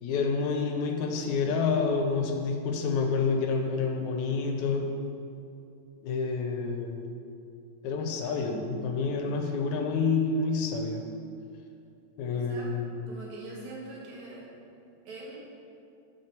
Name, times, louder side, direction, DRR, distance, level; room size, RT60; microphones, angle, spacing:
voice 1, 0.0-4.9 6.0-7.1 7.8-11.0 12.2-13.1, left 4 dB, 80° left, 4 dB, 1.9 m, -28 dB
voice 2, 12.3-12.7 13.1-14.5 15.1-15.4, right 2 dB, 70° right, -4 dB, 2.6 m, -43 dB
7.6 x 5.3 x 4.5 m, 2.5 s
omnidirectional pair, 3.5 m